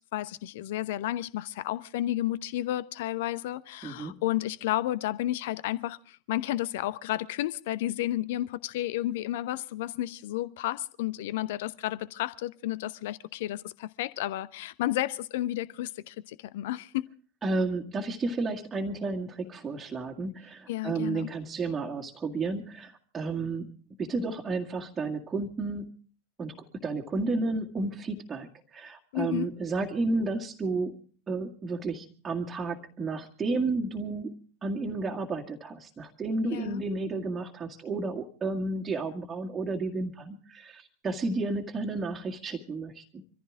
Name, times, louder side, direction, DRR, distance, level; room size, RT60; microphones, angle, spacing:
voice 1, 0.1-17.1 20.7-21.3 29.1-29.5 36.4-36.8, left 14 dB, 50° left, 0.8 m, -32 dB
voice 2, 3.8-4.2 17.4-25.9 26.4-31.0 31.3-43.2, right 3 dB, 15° right, 1.9 m, -32 dB
25.0 x 14.5 x 3.7 m
figure-of-eight pair, 90°, 0 cm